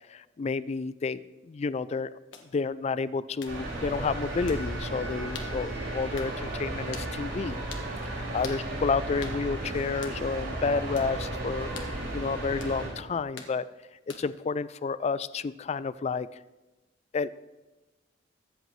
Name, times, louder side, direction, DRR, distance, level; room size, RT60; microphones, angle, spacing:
voice 1, 0.1-2.1 2.5-7.6 8.1-11.7 12.1-13.7 14.1-16.3 17.1-17.3, left 4 dB, 35° left, 16 dB, 0.3 m, -30 dB
sound 1, 2.3-2.5 3.4-3.6 4.5-4.6 5.3-5.5 6.2-6.3 6.9-7.1 7.7-7.9 8.4-8.6 9.2-9.4 10.0-10.2 11.0-11.1 11.7-11.9 12.6-12.8 13.4-13.5 14.1-14.4, left 6 dB, 85° left, 1.4 m, -43 dB
sound 2, 3.5-12.9, right 1 dB, 80° right, 5.1 m, -34 dB
23.0 x 8.0 x 3.2 m, 1.1 s
head